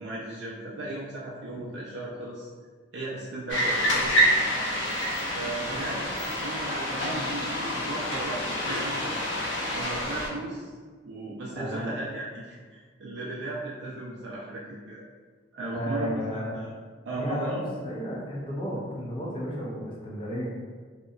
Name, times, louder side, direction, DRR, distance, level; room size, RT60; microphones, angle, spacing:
voice 1, 0.0-2.5 2.9-4.2 5.3-9.2 9.7-10.7 11.0-15.1 15.5-16.7 17.1-17.7, right 2 dB, 70° right, -6 dB, 0.4 m, -36 dB
sound 1, 3.5-10.3, equal, 75° left, 0.5 m, -27 dB
voice 2, 11.6-12.0 15.7-16.6 17.1-20.5, equal, 25° left, -4 dB, 0.5 m, -33 dB
2.7 x 2.1 x 2.4 m, 1.5 s
head